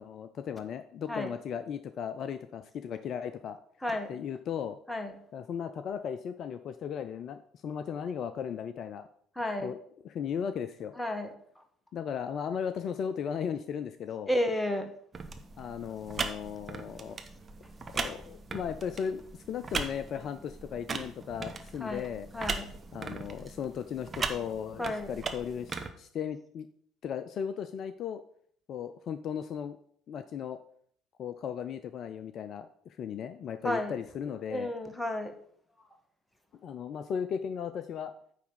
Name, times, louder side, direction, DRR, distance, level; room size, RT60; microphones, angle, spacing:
voice 1, 0.0-3.6 4.1-4.8 5.3-9.1 9.6-9.8 10.0-11.0 11.9-14.3 15.6-17.2 17.9-22.3 22.9-26.7 27.0-28.2 28.7-29.8 30.1-30.6 31.2-34.7 36.6-38.1, left 7 dB, 55° left, 11 dB, 0.5 m, -36 dB
voice 2, 9.4-9.7 11.0-11.3 14.3-14.9 21.8-22.1 22.3-22.7 24.8-25.1 33.6-33.9 34.5-35.3, left 1 dB, 10° left, 6 dB, 1.6 m, -31 dB
sound 1, 15.1-25.9, right 4 dB, 35° right, 1.0 m, -39 dB
9.2 x 3.5 x 6.9 m, 0.63 s
hypercardioid pair, 55°, 0 cm